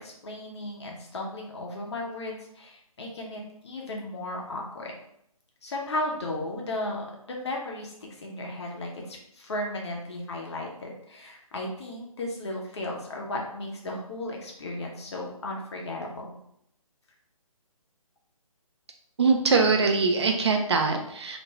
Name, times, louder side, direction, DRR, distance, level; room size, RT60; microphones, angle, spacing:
voice 1, 0.0-4.9 5.6-16.3, left 1 dB, 50° left, -1 dB, 0.7 m, -35 dB
voice 2, 19.2-21.4, right 4 dB, 50° right, 3 dB, 0.4 m, -22 dB
2.5 x 2.2 x 3.0 m, 0.74 s
figure-of-eight pair, 150°, 19 cm